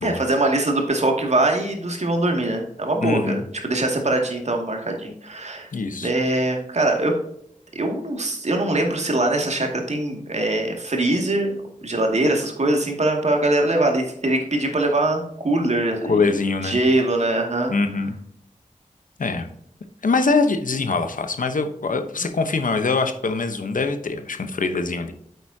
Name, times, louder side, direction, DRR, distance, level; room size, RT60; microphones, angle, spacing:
voice 1, 0.0-5.7 6.0-7.1 7.7-11.6 11.8-16.2 16.6-17.7, right 2 dB, 55° right, 2 dB, 2.3 m, -22 dB
voice 2, 3.0-3.4 5.7-6.1 16.0-16.8 17.7-18.1 19.2-19.5 20.0-25.1, left 4 dB, 75° left, 8 dB, 1.0 m, -23 dB
9.5 x 8.0 x 2.8 m, 0.70 s
wide cardioid pair, 90°, 14 cm